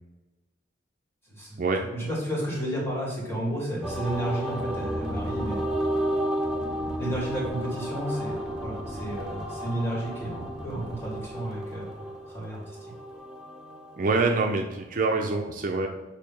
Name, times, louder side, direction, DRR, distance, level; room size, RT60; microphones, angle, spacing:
voice 1, 1.3-5.6 7.0-12.9, right 1 dB, 15° left, -5 dB, 2.0 m, -32 dB
sound 1, 3.8-14.2, equal, 5° right, 0.8 m, -32 dB
voice 2, 14.0-15.9, right 3 dB, 50° right, 2 dB, 0.5 m, -25 dB
6.7 x 2.8 x 5.3 m, 1.1 s
head